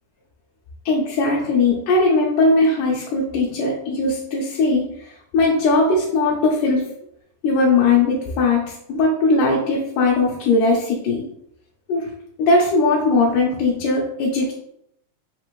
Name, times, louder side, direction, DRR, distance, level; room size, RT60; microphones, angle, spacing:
voice 1, 0.9-6.9 7.4-11.2 11.9-12.1 12.4-14.5, left 3 dB, 80° left, -2 dB, 2.1 m, -19 dB
5.5 x 2.5 x 3.0 m, 0.75 s
omnidirectional pair, 3.7 m